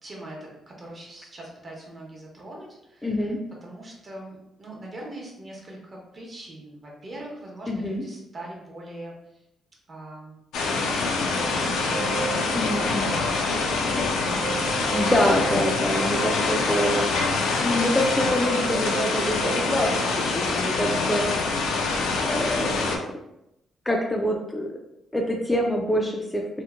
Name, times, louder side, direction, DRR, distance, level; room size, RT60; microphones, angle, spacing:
voice 1, 0.0-3.3 3.6-9.4 9.9-10.4 10.6-15.4 20.6-21.1, right 1 dB, 40° right, -2 dB, 0.8 m, -42 dB
voice 2, 3.0-3.4 7.7-8.0 12.5-13.1 14.9-17.1 17.6-21.2 22.2-23.0 23.9-24.8 25.1-26.6, left 1 dB, 15° left, 1 dB, 0.3 m, -25 dB
sound 1, 10.5-23.0, left 3 dB, 85° left, 0.4 m, -25 dB
sound 2, 11.3-19.7, right 3 dB, 65° right, 1.0 m, -34 dB
2.8 x 2.1 x 2.4 m, 0.85 s
cardioid pair, 90°, 0 cm